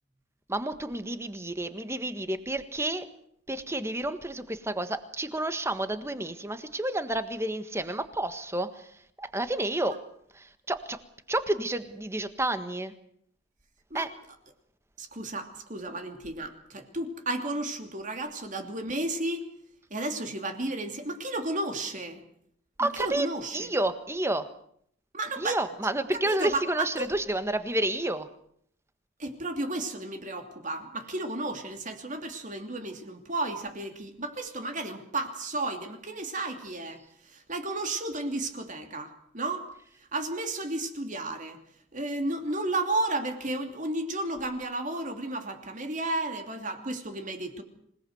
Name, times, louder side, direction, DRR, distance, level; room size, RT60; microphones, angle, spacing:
voice 1, 0.5-3.1 3.5-8.7 9.2-9.9 10.7-11.0 11.3-12.9 13.9-14.1 22.8-23.3 23.5-24.4 25.4-28.3, right 1 dB, 15° right, 10 dB, 1.5 m, -30 dB
voice 2, 15.0-19.5 19.9-22.2 22.8-23.7 25.1-27.1 29.2-39.7 40.1-41.6 41.9-47.6, right 2 dB, 40° right, 5 dB, 2.8 m, -33 dB
26.5 x 18.5 x 8.0 m, 0.68 s
head